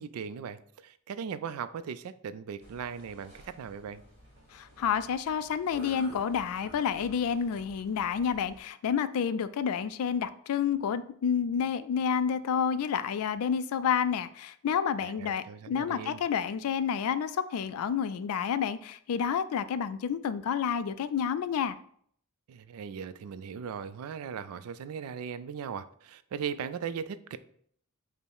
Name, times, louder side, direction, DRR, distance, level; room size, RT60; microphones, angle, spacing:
voice 1, 0.0-4.0 15.0-16.2 22.5-27.4, right 7 dB, 75° right, 0.3 m, -38 dB
sound 1, 2.6-8.6, equal, 25° right, 1.7 m, -52 dB
voice 2, 4.5-21.8, left 7 dB, 75° left, 0.3 m, -29 dB
5.4 x 2.0 x 4.7 m
head